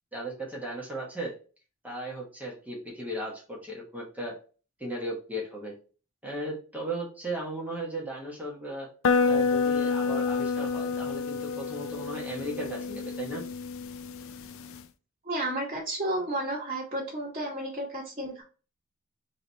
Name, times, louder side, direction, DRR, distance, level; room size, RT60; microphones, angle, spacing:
voice 1, 0.1-1.4 1.8-4.3 4.8-5.7 6.2-8.9 9.2-13.4, right 1 dB, 5° right, -3 dB, 1.1 m, -36 dB
sound 1, 9.0-14.8, left 5 dB, 65° left, 0.4 m, -28 dB
voice 2, 15.2-18.4, right 1 dB, 30° right, -7 dB, 1.1 m, -32 dB
3.3 x 2.9 x 3.9 m, 0.36 s
head